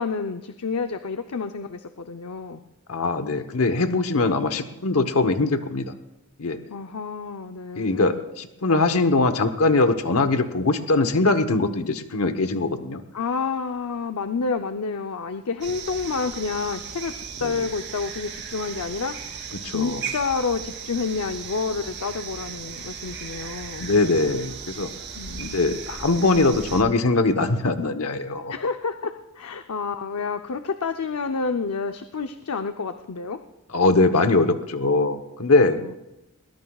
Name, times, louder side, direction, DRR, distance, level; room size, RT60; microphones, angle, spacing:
voice 1, 0.0-2.6 6.7-8.2 13.1-23.9 25.1-25.8 28.5-33.4 35.8-36.0, left 4 dB, 90° left, 7 dB, 0.7 m, -29 dB
voice 2, 2.9-5.9 6.4-6.6 7.8-13.0 17.4-17.5 19.6-20.0 23.8-24.9 25.4-28.5 33.7-35.8, left 3 dB, 70° left, 9 dB, 1.1 m, -22 dB
sound 1, 15.6-26.8, right 6 dB, 55° right, 2.9 m, -36 dB
21.0 x 20.0 x 2.4 m, 0.94 s
head